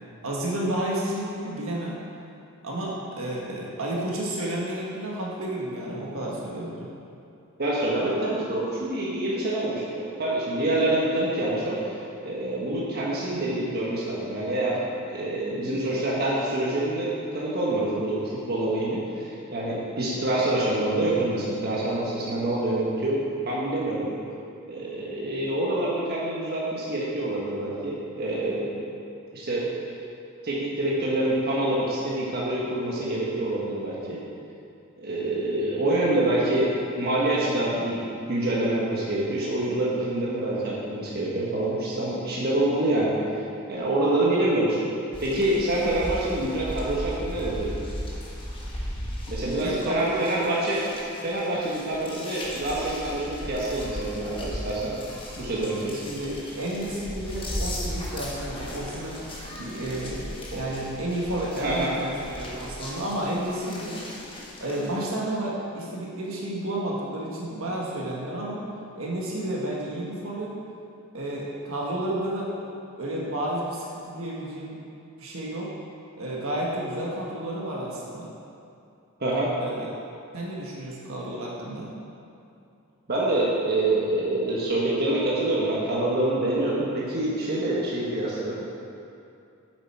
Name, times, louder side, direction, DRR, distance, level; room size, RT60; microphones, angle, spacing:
voice 1, 0.2-2.0 2.6-6.9 49.5-50.3 55.9-59.2 59.6-64.1 64.6-68.7 68.9-70.5 71.1-72.5 73.0-74.8 75.2-75.7 76.2-78.3 79.6-79.9 80.3-81.9, right 1 dB, 65° right, -4 dB, 1.5 m, -31 dB
voice 2, 7.6-12.0 12.2-14.8 15.1-24.1 24.7-28.7 29.3-29.7 30.4-34.2 35.0-38.0 38.3-43.1 43.7-44.8 45.2-47.9 49.3-50.8 51.2-55.0 55.4-55.9 61.5-61.9 79.2-79.5 83.1-88.6, right 1 dB, 45° right, -6 dB, 1.3 m, -26 dB
sound 1, 45.1-65.1, equal, 25° left, 1.3 m, -37 dB
7.9 x 7.5 x 4.6 m, 2.6 s
head